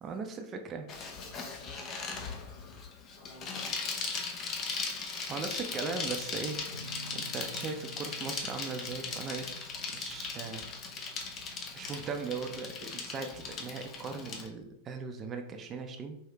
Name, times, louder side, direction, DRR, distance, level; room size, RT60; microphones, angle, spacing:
voice 1, 0.0-0.9 5.3-9.5 9.9-10.7 11.8-16.2, right 4 dB, 25° right, 5 dB, 0.5 m, -39 dB
voice 2, 0.9-2.8 3.2-4.2, left 2 dB, 55° left, 1 dB, 1.1 m, -53 dB
Bicycle, 0.9-14.5, left 4 dB, 30° left, 0.7 m, -38 dB
sound 1, 6.7-14.3, right 1 dB, 90° left, 0.4 m, -52 dB
4.8 x 3.1 x 2.9 m, 0.78 s
figure-of-eight pair, 90°, 0 cm